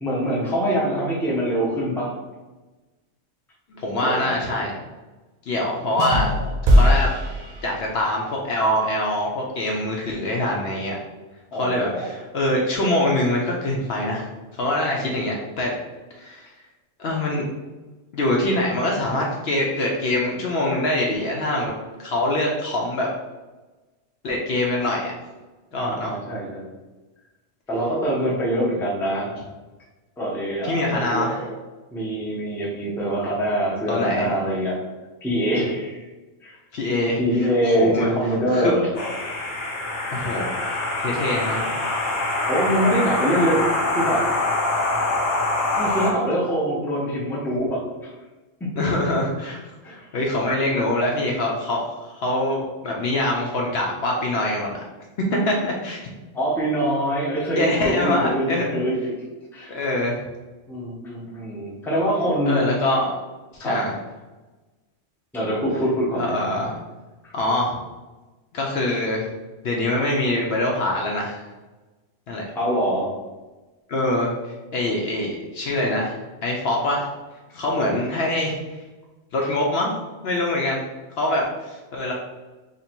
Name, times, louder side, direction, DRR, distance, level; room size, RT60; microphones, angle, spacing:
voice 1, 0.0-2.1 4.0-4.4 6.3-6.4 11.5-12.1 14.9-15.1 25.7-26.7 27.7-29.3 30.2-31.5 31.9-34.8 35.2-36.0 36.4-36.6 37.2-38.9 42.5-44.3 45.7-48.1 48.6-49.0 49.8-50.1 56.3-59.2 59.5-59.8 60.7-62.7 63.6-63.9 65.3-66.4 72.5-73.1 79.4-79.5, right 1 dB, ahead, -4 dB, 0.6 m, -24 dB
voice 2, 3.7-4.8 5.5-6.3 6.7-7.1 7.6-11.0 11.5-14.3 14.6-15.7 16.1-16.5 17.0-17.5 18.1-21.7 22.0-23.1 24.2-25.1 25.7-26.2 30.6-31.5 33.9-34.3 36.7-38.1 38.5-38.7 40.1-41.7 48.8-49.6 49.9-54.8 55.3-56.0 57.6-58.8 59.7-60.2 62.5-63.1 63.5-63.9 66.2-66.7 67.3-67.8 68.5-69.3 69.6-71.4 72.3-72.4 73.9-77.1 77.5-78.6 79.3-79.9 80.2-80.8 81.2-82.1, left 1 dB, 65° left, -1 dB, 0.8 m, -24 dB
sound 1, 6.0-8.2, equal, 80° right, 0.3 m, -20 dB
sound 2, 38.9-46.1, left 2 dB, 90° left, 1.2 m, -24 dB
2.9 x 2.7 x 4.3 m, 1.2 s
omnidirectional pair, 1.3 m